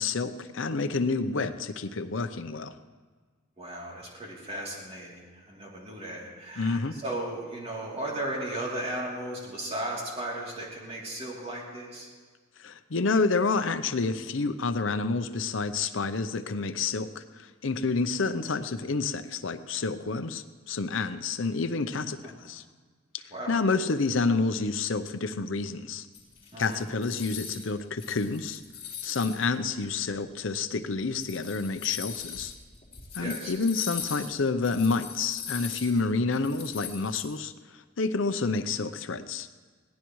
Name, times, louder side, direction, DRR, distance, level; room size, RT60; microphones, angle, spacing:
voice 1, 0.0-2.8 6.6-6.9 12.6-22.6 23.1-26.1 26.6-28.6 29.0-32.5 33.1-39.5, left 4 dB, 75° left, 10 dB, 0.7 m, -29 dB
voice 2, 3.6-12.1 23.3-23.6 26.5-26.9 33.2-33.5, right 1 dB, 30° right, -3 dB, 3.1 m, -36 dB
sound 1, 26.1-27.7 28.0-29.5 30.1-30.2 31.0-37.2, left 7 dB, 30° left, 4.9 m, -40 dB
22.0 x 17.0 x 3.2 m, 1.5 s
head